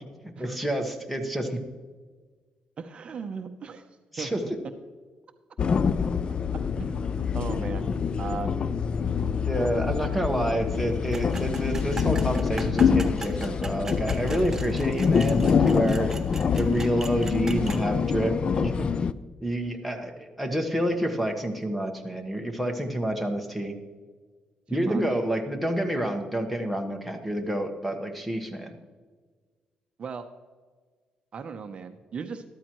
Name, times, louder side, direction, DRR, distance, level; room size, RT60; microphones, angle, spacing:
voice 1, 0.4-1.6 4.1-4.6 9.4-16.1 16.6-18.9 19.4-23.8 24.7-28.7, right 1 dB, ahead, 5 dB, 1.2 m, -28 dB
voice 2, 2.8-3.9 4.2-4.5 6.8-7.9 8.2-8.6 24.7-25.0 30.0-30.2 31.3-32.4, right 5 dB, 45° right, 7 dB, 0.7 m, -37 dB
sound 1, 5.6-19.1, left 6 dB, 40° left, 0.4 m, -26 dB
sound 2, 11.1-17.8, right 2 dB, 20° right, 0.8 m, -40 dB
13.5 x 12.5 x 3.0 m, 1.5 s
cardioid pair, 130°, 3 cm